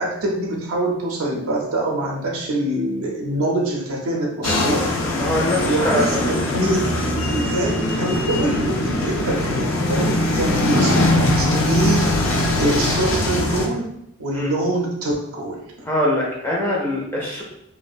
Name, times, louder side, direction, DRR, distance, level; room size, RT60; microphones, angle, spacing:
voice 1, 0.0-4.9 5.7-7.0 7.3-12.1 12.6-13.9 14.2-15.6, right 1 dB, 85° right, -2 dB, 0.5 m, -24 dB
sound 1, 4.4-13.7, left 1 dB, 75° left, 0.4 m, -21 dB
voice 2, 5.2-6.6 14.3-14.5 15.9-17.4, left 1 dB, 10° left, -4 dB, 0.4 m, -23 dB
2.3 x 2.1 x 2.5 m, 0.77 s
head